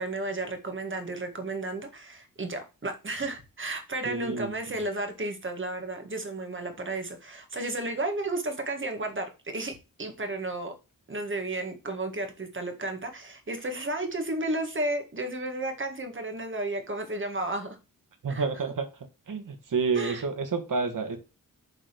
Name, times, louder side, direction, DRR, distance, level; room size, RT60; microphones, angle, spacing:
voice 1, 0.0-10.7 11.1-17.8 18.3-18.4 20.0-20.2, right 2 dB, 35° right, 1.7 m, -33 dB
voice 2, 4.1-4.5 18.2-18.9 19.3-21.2, right 4 dB, 65° right, 1.7 m, -29 dB
7.4 x 4.0 x 6.7 m
wide cardioid pair, 150°, 34 cm